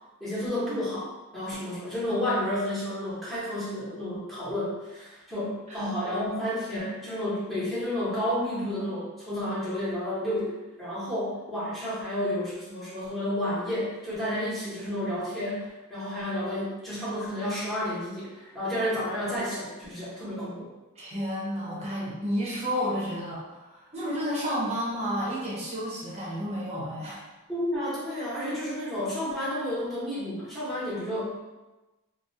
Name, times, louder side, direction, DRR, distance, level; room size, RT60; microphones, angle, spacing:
voice 1, 0.2-20.7 27.5-31.5, left 1 dB, ahead, -10 dB, 0.8 m, -31 dB
voice 2, 21.0-27.2, equal, 30° right, -6 dB, 0.7 m, -31 dB
2.3 x 2.0 x 2.7 m, 1.1 s
head